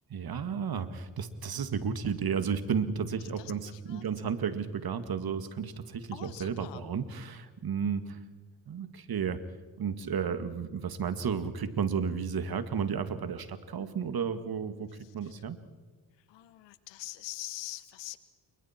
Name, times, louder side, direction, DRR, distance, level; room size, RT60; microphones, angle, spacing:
voice 1, 0.1-8.2 8.7-9.4 9.8-15.6, right 6 dB, 55° right, 10 dB, 2.0 m, -33 dB
voice 2, 3.4-4.1 6.1-6.8 15.0-15.3 16.2-18.2, left 16 dB, 85° left, 14 dB, 1.3 m, -44 dB
29.0 x 24.5 x 4.5 m, 1.4 s
supercardioid pair, 55°, 43 cm